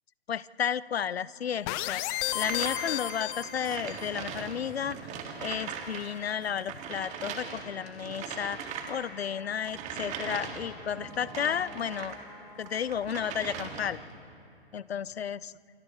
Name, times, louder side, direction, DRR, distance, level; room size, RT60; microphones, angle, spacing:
voice 1, 0.3-2.0 2.3-5.1 5.4-12.2 12.6-14.0 14.7-15.5, left 8 dB, 70° left, 20 dB, 0.6 m, -33 dB
sound 1, 1.7-4.1, left 15 dB, 20° left, 0.5 m, -33 dB
sound 2, 2.2-12.2 12.6-14.1, right 6 dB, 20° right, 2.0 m, -40 dB
Wind instrument woodwind instrument, 8.9-13.8, left 3 dB, 50° left, 4.3 m, -52 dB
29.0 x 28.5 x 3.2 m, 2.6 s
figure-of-eight pair, 120°, 32 cm